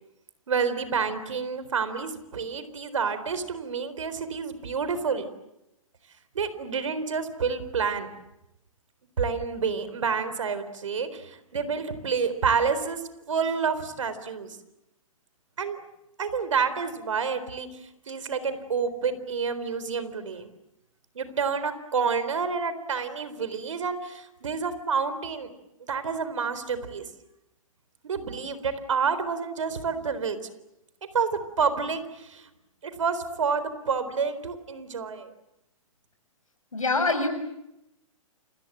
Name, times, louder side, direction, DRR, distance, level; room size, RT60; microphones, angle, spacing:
voice 1, 0.5-5.3 6.3-8.1 9.2-13.0 13.3-14.6 15.6-15.8 16.2-17.7 18.1-20.4 21.1-25.5 25.8-27.0 28.0-30.4 31.1-31.3 31.6-32.5 32.8-35.3, right 5 dB, 65° right, 12 dB, 4.1 m, -28 dB
voice 2, 36.7-37.3, left 3 dB, 75° left, 8 dB, 7.3 m, -24 dB
30.0 x 26.5 x 7.6 m, 0.86 s
figure-of-eight pair, 120°, 18 cm